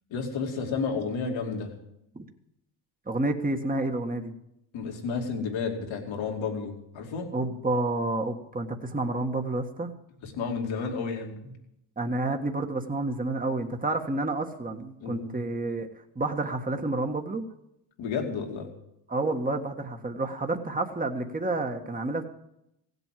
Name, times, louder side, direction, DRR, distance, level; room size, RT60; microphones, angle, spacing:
voice 1, 0.1-1.7 4.7-7.3 10.2-11.6 15.0-15.3 18.0-18.7, left 5 dB, 75° left, 2 dB, 2.7 m, -31 dB
voice 2, 3.1-4.3 7.3-9.9 12.0-15.9 16.1-17.4 19.1-22.2, right 2 dB, 20° right, 5 dB, 1.7 m, -29 dB
16.0 x 8.2 x 7.6 m, 0.81 s
supercardioid pair, 60°, 46 cm